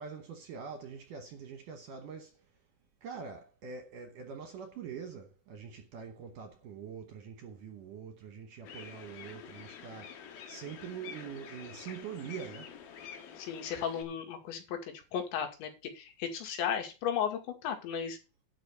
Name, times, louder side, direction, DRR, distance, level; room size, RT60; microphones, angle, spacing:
voice 1, 0.0-2.4 3.0-10.2 10.5-12.7, right 7 dB, 70° right, 2.1 m, -44 dB
sound 1, 8.6-14.0, left 7 dB, 65° left, 3.1 m, -48 dB
voice 2, 13.4-14.8 15.1-18.2, left 8 dB, 80° left, 4.4 m, -35 dB
11.0 x 5.4 x 6.8 m
omnidirectional pair, 5.1 m